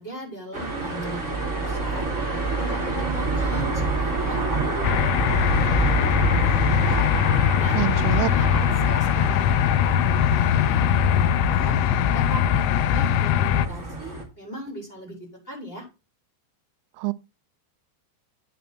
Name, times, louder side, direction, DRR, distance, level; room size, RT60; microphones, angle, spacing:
voice 1, 0.0-2.2 2.5-6.6 6.8-7.2 7.6-7.8 8.1-11.8 12.1-15.2 15.4-15.9, equal, 15° left, 4.4 m, -39 dB
sound 1, 0.5-14.2, right 2 dB, 20° right, 2.4 m, -28 dB
sound 2, 4.8-13.7, left 10 dB, 85° left, 2.9 m, -21 dB
voice 2, 7.7-8.3 17.0-17.1, right 24 dB, 90° right, 3.0 m, -25 dB
9.4 x 6.5 x 4.3 m
omnidirectional pair, 5.2 m